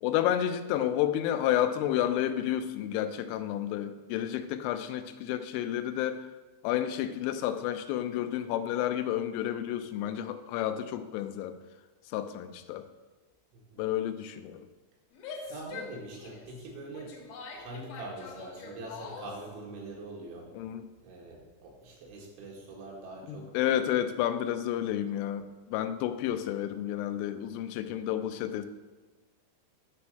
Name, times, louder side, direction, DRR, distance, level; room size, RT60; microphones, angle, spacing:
voice 1, 0.0-6.3 6.6-11.6 12.1-12.9 13.8-14.7 20.5-20.9 23.3-28.7, left 11 dB, 90° left, 10 dB, 3.2 m, -31 dB
Female speech woman speaking / Yell, 15.1-19.5, left 5 dB, 65° left, 2.5 m, -44 dB
voice 2, 15.4-17.2 17.5-20.5 21.0-23.5, right 2 dB, 75° right, -2 dB, 3.9 m, -43 dB
10.5 x 4.3 x 6.3 m, 1.2 s
omnidirectional pair, 5.6 m